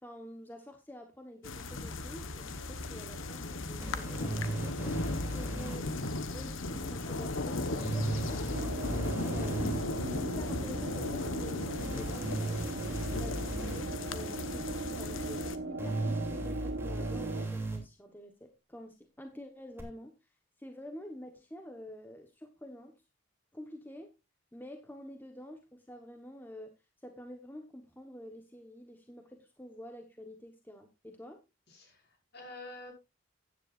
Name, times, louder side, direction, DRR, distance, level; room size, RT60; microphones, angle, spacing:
voice 1, 0.0-4.6 4.9-5.9 6.3-9.7 10.2-12.6 13.2-20.1 20.6-22.9 23.5-24.1 24.5-26.7 27.0-31.4, equal, 10° left, 5 dB, 1.1 m, -48 dB
sound 1, 1.4-15.6, left 2 dB, 80° left, 1.2 m, -37 dB
sound 2, 3.8-5.8 7.8-9.8 11.8-13.8 15.8-17.8 19.8-19.9, right 2 dB, 10° right, 2.9 m, -36 dB
sound 3, 8.5-17.5, right 2 dB, 70° right, 1.0 m, -39 dB
voice 2, 31.7-32.9, left 2 dB, 55° left, 2 dB, 5.7 m, -48 dB
15.0 x 9.9 x 2.5 m, 0.25 s
head